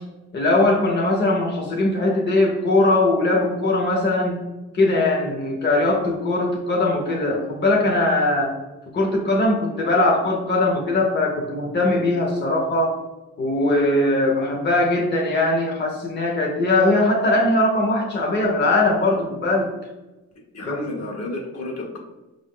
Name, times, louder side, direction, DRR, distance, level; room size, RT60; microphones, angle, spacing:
voice 1, 0.3-4.4 4.7-8.5 8.9-12.9 13.4-19.7 20.7-20.8, left 2 dB, 35° left, -1 dB, 0.9 m, -20 dB
voice 2, 20.5-22.0, left 2 dB, 55° left, 0 dB, 1.2 m, -31 dB
5.0 x 2.7 x 3.7 m, 1.1 s
cardioid pair, 90°, 30 cm